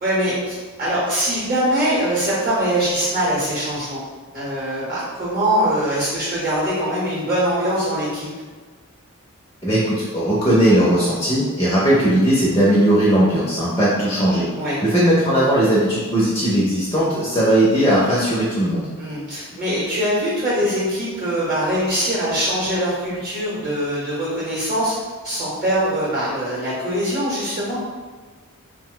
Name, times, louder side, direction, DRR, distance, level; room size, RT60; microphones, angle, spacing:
voice 1, 0.0-4.0 4.3-8.3 14.6-14.8 19.0-24.9 25.2-27.8, equal, 40° right, -8 dB, 0.8 m, -22 dB
voice 2, 9.6-14.4 14.8-18.9, right 1 dB, 15° left, -7 dB, 0.5 m, -18 dB
2.5 x 2.1 x 3.7 m, 1.4 s
head